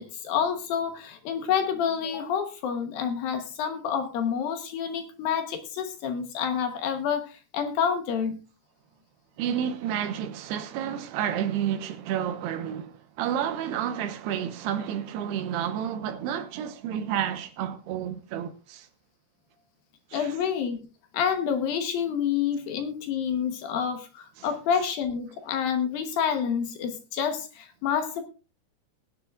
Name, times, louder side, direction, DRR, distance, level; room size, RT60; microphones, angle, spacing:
voice 1, 0.0-8.4 20.1-20.8 21.1-28.2, left 7 dB, 70° left, 2.6 m, -28 dB
voice 2, 9.4-18.9 20.1-20.4 24.4-24.5, right 9 dB, 80° right, 3.0 m, -30 dB
20.5 x 9.9 x 2.4 m
omnidirectional pair, 4.8 m